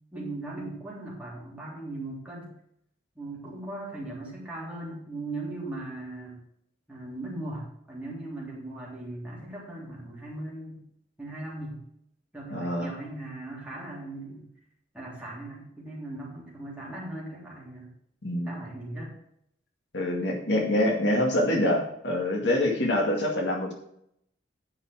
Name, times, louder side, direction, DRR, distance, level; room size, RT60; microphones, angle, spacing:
voice 1, 0.1-2.5 3.1-6.4 6.9-10.8 11.2-11.8 12.3-14.4 14.9-17.9 18.4-19.1, right 2 dB, 5° right, -5 dB, 3.3 m, -38 dB
voice 2, 12.5-12.9 18.2-18.6 19.9-23.7, left 1 dB, 65° left, 0 dB, 2.1 m, -25 dB
9.5 x 5.7 x 6.2 m, 0.72 s
head